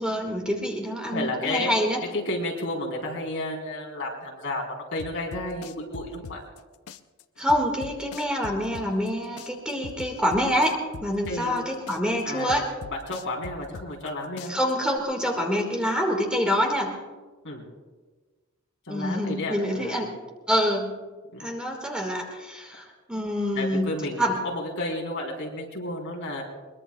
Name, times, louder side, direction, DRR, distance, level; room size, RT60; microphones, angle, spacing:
voice 1, 0.0-2.0 7.4-12.7 14.5-17.0 18.9-20.1 20.5-21.0 21.4-23.9 24.2-24.4, equal, 5° right, 0 dB, 1.9 m, -26 dB
voice 2, 1.1-1.7 2.1-6.4 11.3-11.6 12.2-12.5 12.9-14.6 17.4-17.6 18.9-20.0 21.3-21.5 23.5-26.4, left 1 dB, 60° left, -1 dB, 3.7 m, -32 dB
sound 1, 5.0-6.6 6.9-9.1 9.4-11.6 11.9-14.1 14.4-15.0, left 5 dB, 85° left, 0.6 m, -41 dB
22.5 x 21.5 x 2.3 m, 1.3 s
head